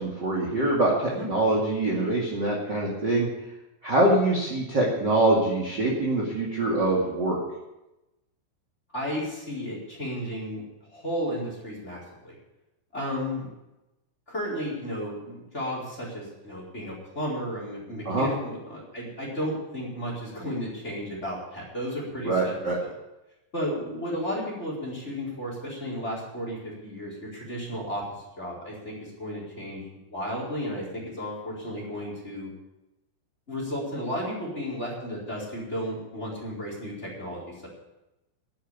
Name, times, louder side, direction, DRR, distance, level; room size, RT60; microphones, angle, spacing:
voice 1, 0.0-3.3 3.8-7.4 18.0-18.3 22.2-22.8, right 2 dB, 45° right, -2 dB, 1.5 m, -24 dB
voice 2, 8.9-10.6 10.9-12.4 12.9-13.5 14.3-22.9 23.5-28.1 28.4-32.5 33.5-37.7, equal, 15° left, -3 dB, 3.9 m, -33 dB
11.5 x 10.5 x 8.3 m, 0.96 s
omnidirectional pair, 5.8 m